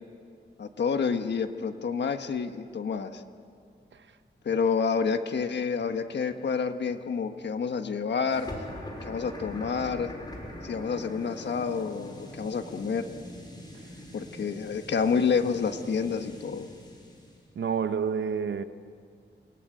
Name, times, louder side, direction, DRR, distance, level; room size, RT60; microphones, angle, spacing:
voice 1, 0.6-3.2 4.4-8.5 9.0-10.1 10.6-13.1 14.1-16.7, left 5 dB, 70° left, 1.3 m, -28 dB
sound 1, 8.3-17.4, equal, 25° left, 5.8 m, -43 dB
voice 2, 17.5-18.6, right 6 dB, 80° right, 1.0 m, -28 dB
30.0 x 19.0 x 9.2 m
wide cardioid pair, 140°, 19 cm